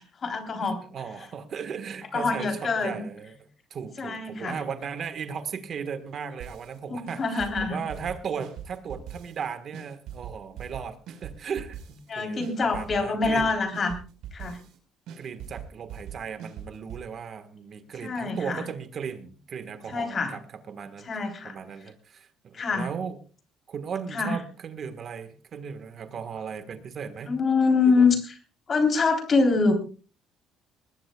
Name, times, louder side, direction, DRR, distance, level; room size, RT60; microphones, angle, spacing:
voice 1, 0.0-0.8 2.1-3.0 4.0-4.6 6.9-7.8 12.1-14.0 14.3-14.6 18.0-18.6 19.9-20.3 21.0-21.6 22.5-22.9 24.1-24.4 27.3-28.4 28.7-29.7, left 4 dB, 35° left, 5 dB, 3.5 m, -25 dB
voice 2, 0.6-13.6 15.2-21.1 21.4-23.2 23.7-27.3 27.9-28.1, right 6 dB, 45° right, 10 dB, 1.4 m, -37 dB
sound 1, 6.4-6.8 7.1-9.4 9.7-12.1 12.4-14.8 15.1-17.0, right 8 dB, 75° right, 4.6 m, -41 dB
20.5 x 20.0 x 2.3 m, 0.37 s
cardioid pair, 135°, 0 cm